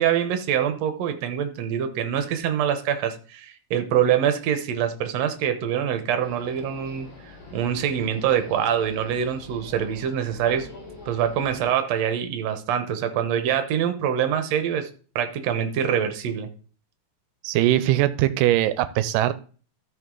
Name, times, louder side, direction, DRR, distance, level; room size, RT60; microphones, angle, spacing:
voice 1, 0.0-7.1 7.5-10.7 11.1-14.9 15.2-16.5, right 9 dB, 65° right, 8 dB, 1.8 m, -24 dB
sound 1, 6.2-11.7, left 3 dB, 50° left, 5.1 m, -45 dB
voice 2, 17.4-19.3, right 14 dB, 90° right, 13 dB, 2.2 m, -21 dB
14.0 x 5.5 x 3.8 m, 0.40 s
omnidirectional pair, 3.8 m